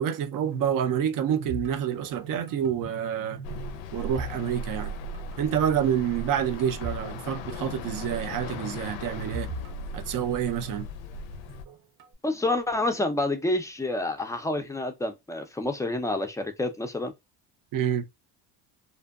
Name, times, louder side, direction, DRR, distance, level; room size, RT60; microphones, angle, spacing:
voice 1, 0.0-3.4 3.9-4.9 5.4-9.5 9.9-10.9 17.7-18.1, right 9 dB, 50° right, 0.5 m, -28 dB
sound 1, 1.5-3.0 3.3-4.9 5.1-5.4 6.0-7.1 7.4-7.5 8.7-10.7 11.3-12.1, right 1 dB, 80° right, 0.8 m, -40 dB
sound 2, 3.4-11.6, left 1 dB, 85° left, 0.5 m, -38 dB
voice 2, 12.2-17.1, left 2 dB, 10° left, 0.4 m, -28 dB
2.6 x 2.1 x 2.3 m
cardioid pair, 95°, 44 cm